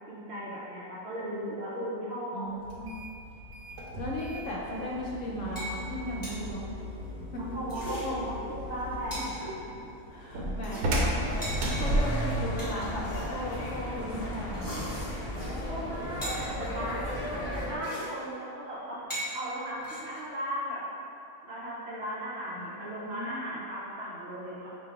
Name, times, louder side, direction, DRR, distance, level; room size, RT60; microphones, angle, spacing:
voice 1, 0.1-2.5 7.5-8.4 8.7-9.5 15.4-20.8 21.4-24.7, equal, 55° right, -8 dB, 0.8 m, -37 dB
voice 2, 2.3-3.0 4.0-6.7 7.3-7.4 7.8-8.2 8.9-9.2 10.1-14.9 22.6-23.6, equal, 65° left, -4 dB, 0.8 m, -37 dB
sound 1, 2.6-12.5, right 1 dB, 75° right, 1.1 m, -34 dB
sound 2, 5.2-5.3 5.6-5.8 6.1-6.4 7.5-8.1 8.6-8.7 8.9-9.5 10.0-10.3 10.6-13.7 14.4-15.6 15.9-16.0 16.2-16.7 17.5-17.6 17.8-18.1 18.4-18.5 19.0-19.3 19.8-20.3, right 1 dB, 15° left, 0.8 m, -40 dB
sound 3, 10.9-17.8, equal, 85° left, 0.3 m, -35 dB
5.1 x 2.6 x 3.4 m, 2.7 s
omnidirectional pair, 1.6 m